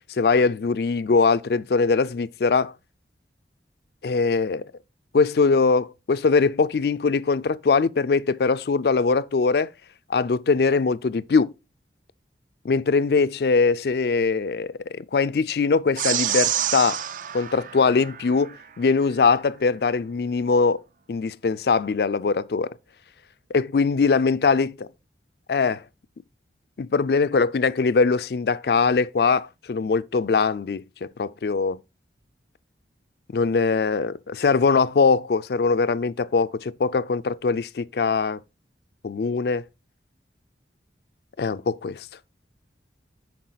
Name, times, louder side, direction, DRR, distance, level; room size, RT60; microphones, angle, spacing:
voice 1, 0.1-2.7 4.0-4.7 5.1-9.7 10.1-11.5 12.6-17.0 17.3-20.8 21.1-22.7 23.5-24.7 25.5-25.8 26.8-31.8 33.3-38.4 39.0-39.6 41.4-42.1, left 4 dB, 60° left, 0.4 m, -22 dB
sound 1, 16.0-18.6, right 10 dB, 45° right, 0.5 m, -28 dB
10.5 x 4.7 x 3.9 m
head